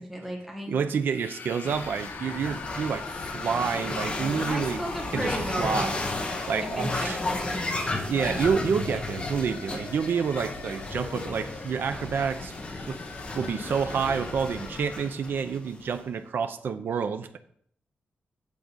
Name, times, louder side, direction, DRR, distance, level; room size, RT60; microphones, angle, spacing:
voice 1, 0.0-0.7 4.4-5.8 6.6-7.6, equal, 5° right, 1.6 m, -34 dB
voice 2, 0.7-4.8 5.1-6.0 6.5-7.2 8.1-12.5 12.9-13.0 13.4-17.4, right 6 dB, 75° right, 0.6 m, -28 dB
sound 1, 1.0-8.1 8.8-15.3, left 6 dB, 80° left, 0.6 m, -42 dB
sound 2, 1.6-16.0, left 2 dB, 30° left, 1.1 m, -34 dB
8.4 x 3.8 x 6.9 m
wide cardioid pair, 170°, 4 cm